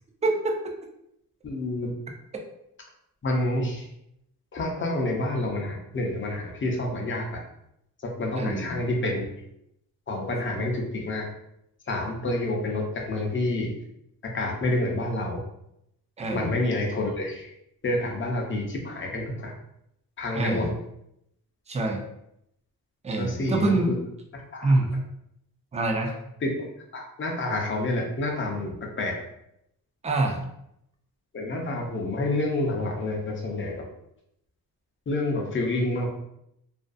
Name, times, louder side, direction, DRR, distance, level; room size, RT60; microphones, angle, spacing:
voice 1, 0.2-0.6 8.4-8.8 16.2-16.5 20.3-20.7 21.7-22.0 23.0-23.9 24.6-24.9 25.7-26.1 30.0-30.4, right 2 dB, 20° right, 2 dB, 0.3 m, -25 dB
voice 2, 1.4-1.9 3.2-3.9 4.5-7.3 8.0-9.3 10.1-11.3 11.9-13.7 14.2-15.4 16.3-17.5 17.8-19.5 20.2-20.7 23.2-23.8 24.3-24.7 26.4-29.1 31.3-33.8 35.1-36.1, left 2 dB, 35° left, 0 dB, 0.5 m, -28 dB
2.5 x 2.2 x 2.4 m, 0.78 s
wide cardioid pair, 130°, 37 cm